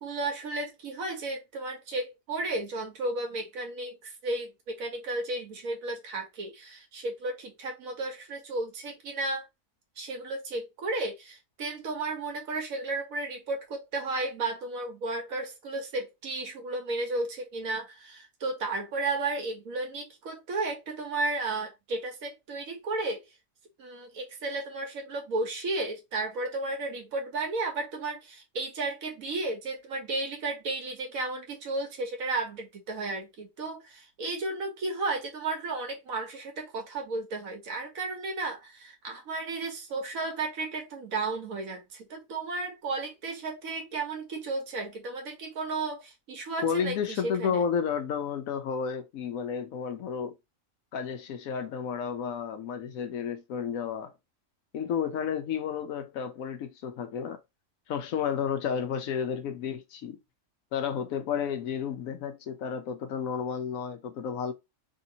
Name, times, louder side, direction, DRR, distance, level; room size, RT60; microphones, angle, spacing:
voice 1, 0.0-9.4 10.0-23.2 23.8-47.6, right 2 dB, 90° right, 1.4 m, -33 dB
voice 2, 46.6-50.3 50.9-54.1 54.7-57.4 57.9-60.2 60.7-64.5, left 7 dB, 90° left, 1.1 m, -31 dB
3.2 x 2.8 x 2.7 m
omnidirectional pair, 1.4 m